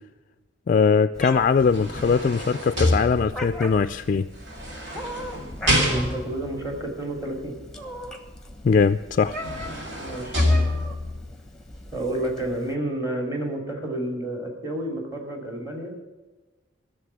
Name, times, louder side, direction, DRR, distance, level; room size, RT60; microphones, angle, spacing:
voice 1, 0.7-4.3 8.6-9.4, left 5 dB, 45° left, 10 dB, 0.3 m, -21 dB
Meow, 1.2-12.7, equal, 5° left, 1.1 m, -39 dB
sound 1, 1.4-3.6 4.5-6.5 8.7-8.8 9.2-11.2 11.7-11.9, left 1 dB, 70° right, 3.2 m, -26 dB
voice 2, 5.8-7.5 10.0-10.4 11.9-16.0, right 1 dB, 15° right, 2 dB, 2.5 m, -30 dB
13.0 x 6.8 x 9.9 m, 1.2 s
head